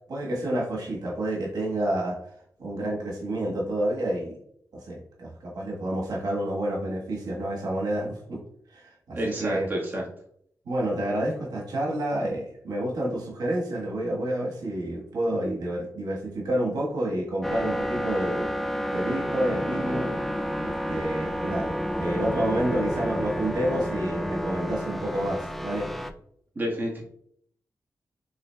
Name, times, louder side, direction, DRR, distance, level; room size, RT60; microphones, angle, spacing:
voice 1, 0.1-2.2 2.6-4.4 4.8-8.4 8.7-9.7 10.6-18.5 18.9-20.1 20.5-21.7 22.0-25.9, right 1 dB, 85° right, -2 dB, 1.3 m, -29 dB
voice 2, 9.1-10.0 26.5-27.0, equal, 30° right, -3 dB, 1.4 m, -29 dB
sound 1, 17.4-26.1, equal, ahead, 0.3 m, -30 dB
5.6 x 3.8 x 2.2 m, 0.66 s
wide cardioid pair, 95°, 6 cm